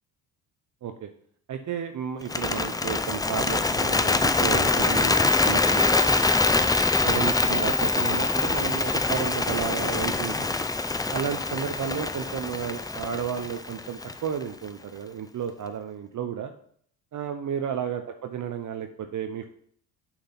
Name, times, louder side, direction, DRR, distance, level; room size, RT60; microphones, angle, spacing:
voice 1, 1.5-6.6 7.0-10.5 11.1-16.5 17.1-19.5, right 8 dB, 45° right, 6 dB, 0.8 m, -32 dB
Bird, 2.2-14.4, left 3 dB, 10° left, 0.4 m, -24 dB
6.6 x 6.3 x 5.7 m, 0.62 s
supercardioid pair, 80°, 45 cm